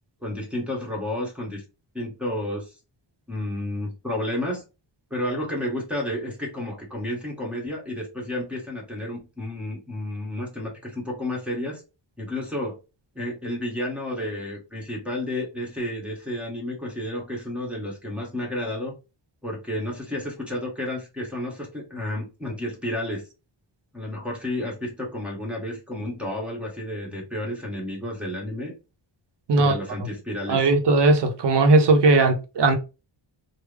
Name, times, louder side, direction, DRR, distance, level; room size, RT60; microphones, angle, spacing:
voice 1, 0.2-1.6 1.9-2.7 3.3-4.6 5.1-11.8 12.2-12.8 13.1-18.9 19.4-23.3 23.9-28.7 29.5-30.6, left 1 dB, 5° right, 1.2 m, -31 dB
voice 2, 30.5-32.8, right 3 dB, 60° right, 0.8 m, -18 dB
3.4 x 2.2 x 3.3 m
wide cardioid pair, 140°, 47 cm